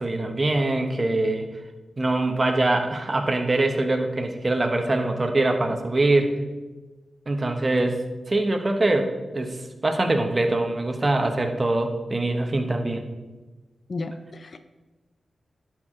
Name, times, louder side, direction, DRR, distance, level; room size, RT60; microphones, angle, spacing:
voice 1, 0.0-1.5 2.0-6.3 7.3-8.0 8.3-9.6 9.8-13.0, right 2 dB, 35° right, 5 dB, 1.0 m, -23 dB
voice 2, 13.9-14.6, left 3 dB, 60° left, 9 dB, 0.4 m, -33 dB
11.0 x 4.6 x 3.7 m, 1.2 s
cardioid pair, 55°, 0 cm